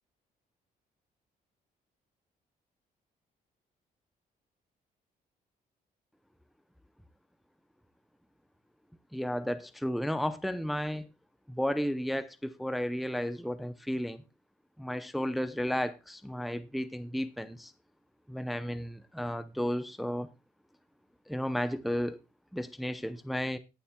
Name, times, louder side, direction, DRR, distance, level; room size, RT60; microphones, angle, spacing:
voice 1, 9.1-11.1 11.5-14.2 14.8-17.7 18.3-20.3 21.3-22.2 22.5-23.6, equal, ahead, 0.5 m, -33 dB
21.0 x 7.1 x 2.2 m
cardioid pair, 140°, 15 cm